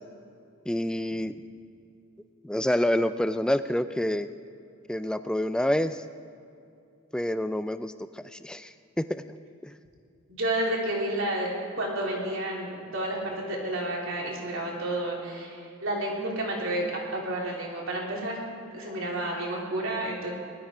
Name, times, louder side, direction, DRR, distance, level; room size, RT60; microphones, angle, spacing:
voice 1, 0.7-1.3 2.4-4.3 4.9-6.0 7.1-9.2 9.6-9.7, left 1 dB, 5° left, 12 dB, 0.3 m, -28 dB
voice 2, 10.3-11.5 11.8-18.4 18.7-20.3, right 1 dB, 65° right, -3 dB, 3.4 m, -30 dB
20.0 x 12.5 x 5.0 m, 2.5 s
head